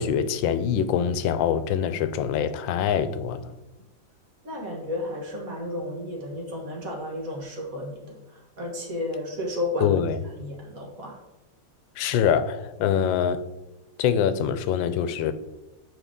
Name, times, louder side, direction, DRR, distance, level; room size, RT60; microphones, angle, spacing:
voice 1, 0.0-3.5 9.8-10.2 12.0-13.4 14.0-15.3, left 8 dB, 85° left, 1.3 m, -24 dB
voice 2, 4.4-10.0 10.4-11.2, left 1 dB, 50° right, 1.8 m, -32 dB
8.3 x 5.1 x 3.7 m
omnidirectional pair, 2.0 m